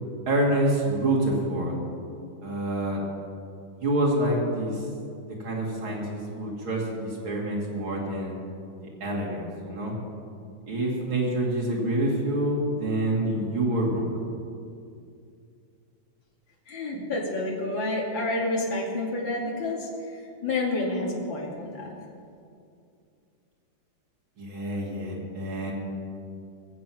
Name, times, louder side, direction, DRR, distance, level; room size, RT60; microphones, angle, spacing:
voice 1, 0.3-1.8 2.4-3.0 3.8-4.7 5.4-8.3 9.0-9.9 10.7-14.1 24.4-25.7, right 1 dB, 85° right, -4 dB, 3.2 m, -27 dB
voice 2, 16.7-21.9, left 2 dB, 70° left, -3 dB, 3.2 m, -29 dB
22.5 x 7.7 x 6.1 m, 2.4 s
omnidirectional pair, 2.2 m